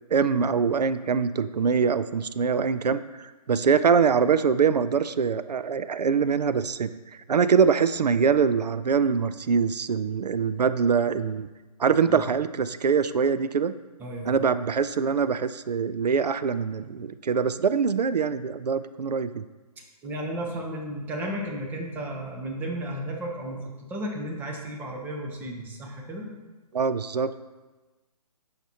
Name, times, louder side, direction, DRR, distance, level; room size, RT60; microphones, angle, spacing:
voice 1, 0.1-6.9 7.3-11.5 11.8-13.8 14.3-19.4 26.7-27.3, right 6 dB, 85° right, 13 dB, 0.4 m, -23 dB
voice 2, 14.0-14.3 19.8-26.3, right 1 dB, 10° right, 0 dB, 0.7 m, -34 dB
9.1 x 5.9 x 2.8 m, 1.2 s
figure-of-eight pair, 145°, 20 cm